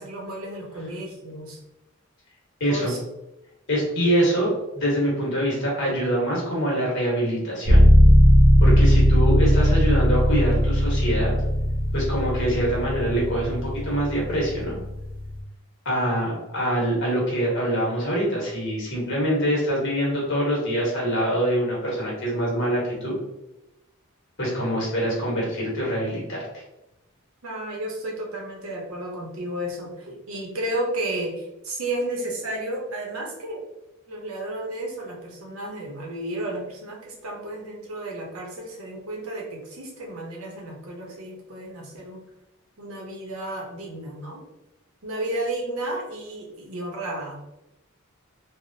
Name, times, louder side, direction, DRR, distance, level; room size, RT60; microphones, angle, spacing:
voice 1, 0.0-1.6 2.7-3.0 27.4-33.6 34.1-42.2 42.8-44.4 45.0-47.3, right 1 dB, 85° right, 0 dB, 0.8 m, -32 dB
voice 2, 2.6-2.9 3.7-7.8 8.6-11.3 11.9-14.8 15.8-23.2 24.4-26.5, equal, 60° left, -4 dB, 1.2 m, -24 dB
sound 1, 7.6-15.4, equal, 45° right, 0.7 m, -18 dB
3.4 x 2.1 x 2.6 m, 0.92 s
head